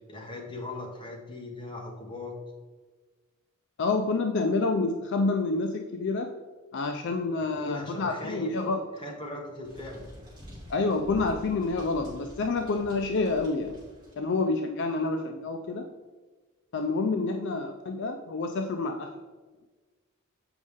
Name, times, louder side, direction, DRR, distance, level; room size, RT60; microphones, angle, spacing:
voice 1, 0.1-2.3 7.4-8.5 8.9-10.0, left 2 dB, 20° left, -1 dB, 1.3 m, -39 dB
voice 2, 3.8-6.3 6.7-8.8 10.7-13.8 14.2-15.8 16.7-19.1, left 3 dB, 55° left, 5 dB, 0.4 m, -28 dB
sound 1, 9.6-14.1, equal, 20° right, 2.4 m, -47 dB
7.9 x 5.2 x 3.6 m, 1.3 s
head